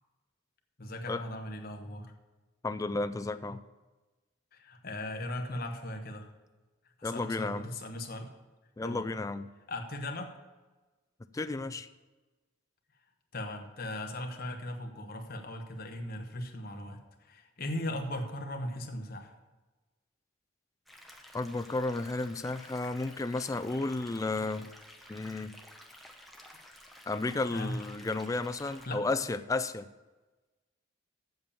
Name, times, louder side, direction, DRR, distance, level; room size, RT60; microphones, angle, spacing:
voice 1, 0.8-2.1 4.5-6.3 7.0-8.3 8.8-9.1 9.7-10.3 13.3-19.3 27.5-27.8 28.9-29.0, left 1 dB, 50° left, 4 dB, 1.1 m, -38 dB
voice 2, 2.6-3.6 7.0-7.7 8.8-9.5 11.3-11.9 21.3-24.7 25.1-25.5 27.1-29.9, left 3 dB, 15° left, 10 dB, 0.3 m, -33 dB
sound 1, 20.9-28.9, equal, ahead, 0.8 m, -53 dB
7.9 x 7.1 x 6.9 m, 1.2 s
head